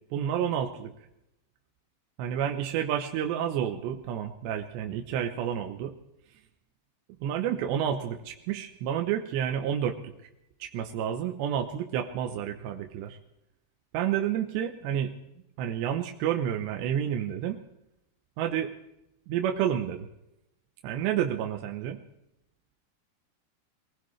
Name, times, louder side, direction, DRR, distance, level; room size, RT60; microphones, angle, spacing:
voice 1, 0.1-0.9 2.2-5.9 7.2-10.1 10.6-13.2 13.9-15.1 15.6-17.6 18.4-18.7 19.3-20.1 20.8-22.0, right 9 dB, 80° right, 4 dB, 3.1 m, -30 dB
23.0 x 19.5 x 3.2 m, 0.86 s
omnidirectional pair, 5.1 m